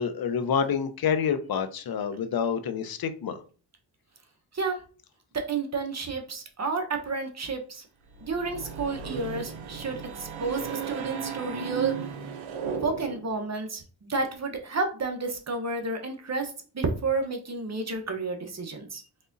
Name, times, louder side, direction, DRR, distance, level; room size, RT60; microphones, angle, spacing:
voice 1, 0.0-3.4, left 7 dB, 50° left, 9 dB, 0.7 m, -28 dB
voice 2, 5.5-7.9 8.2-12.1 12.8-19.0, right 3 dB, 35° right, 4 dB, 1.0 m, -31 dB
sound 1, 8.1-13.4, right 7 dB, 85° right, 0.8 m, -35 dB
4.0 x 3.5 x 2.6 m, 0.39 s
cardioid pair, 70°, 46 cm